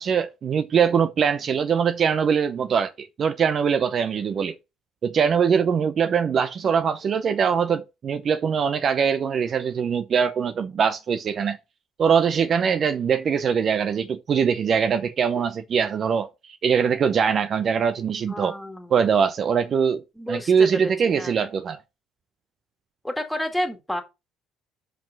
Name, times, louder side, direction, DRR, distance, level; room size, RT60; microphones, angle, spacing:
voice 1, 0.0-4.5 5.0-11.6 12.0-18.5 18.9-20.0 20.3-21.8, right 7 dB, 45° right, 0.6 m, -22 dB
voice 2, 18.3-19.0 20.2-21.3 23.0-24.0, equal, 5° left, 2.0 m, -31 dB
5.5 x 4.9 x 5.9 m
hypercardioid pair, 60°, 0 cm